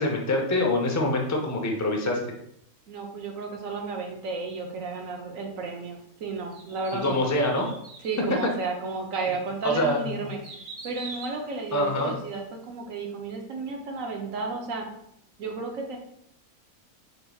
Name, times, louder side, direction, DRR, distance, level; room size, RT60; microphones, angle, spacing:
voice 1, 0.0-2.2 7.0-7.7 9.6-10.3 11.7-12.1, left 1 dB, 25° left, 2 dB, 0.4 m, -25 dB
voice 2, 2.9-7.2 8.0-14.9 15.4-16.0, right 3 dB, 70° right, 1 dB, 1.2 m, -33 dB
sound 1, 6.5-8.3 8.9-9.0 9.6-12.4 12.7-12.8, right 3 dB, 90° right, 1.7 m, -44 dB
5.3 x 4.3 x 2.3 m, 0.74 s
omnidirectional pair, 1.5 m